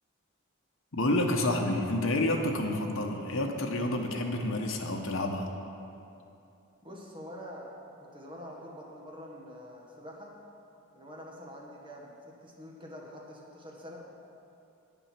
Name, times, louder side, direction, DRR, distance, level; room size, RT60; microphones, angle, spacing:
voice 1, 0.9-5.5, left 1 dB, 70° left, 2 dB, 1.0 m, -29 dB
voice 2, 6.8-7.7 8.1-10.4 10.9-14.0, equal, 25° right, -2 dB, 1.4 m, -46 dB
9.5 x 7.2 x 5.9 m, 2.7 s
head